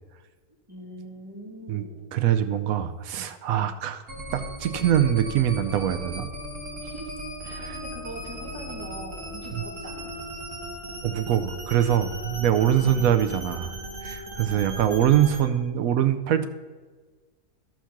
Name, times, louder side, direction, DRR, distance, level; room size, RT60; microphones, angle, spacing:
voice 1, 0.7-2.2 6.8-7.1 7.4-10.1, right 1 dB, 15° right, -5 dB, 2.4 m, -42 dB
voice 2, 2.1-4.0 4.3-6.3 7.6-7.8 11.0-13.7 14.0-16.5, right 10 dB, 70° right, 9 dB, 1.0 m, -23 dB
sound 1, 4.1-15.4, equal, 50° right, 2.0 m, -37 dB
12.5 x 4.6 x 5.8 m, 1.4 s
omnidirectional pair, 1.6 m